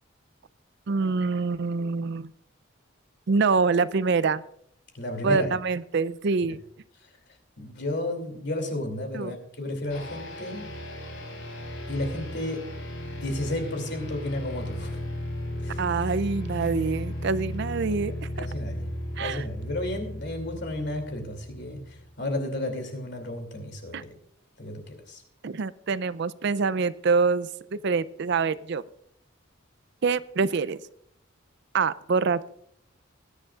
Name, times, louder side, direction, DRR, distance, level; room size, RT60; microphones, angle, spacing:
voice 1, 0.9-2.3 3.3-4.4 5.2-6.6 9.1-9.4 15.8-18.5 19.2-19.4 23.9-24.0 25.4-28.8 30.0-30.8 31.7-32.5, right 4 dB, 55° right, 17 dB, 0.4 m, -25 dB
voice 2, 4.9-5.5 7.6-10.7 11.9-12.6 13.2-15.0 15.6-15.8 17.9-18.0 18.4-18.9 19.2-24.1 24.6-25.2, left 1 dB, 55° left, 5 dB, 2.7 m, -32 dB
sound 1, 9.9-22.1, left 1 dB, 80° left, 3.9 m, -35 dB
20.5 x 10.5 x 2.4 m, 0.70 s
head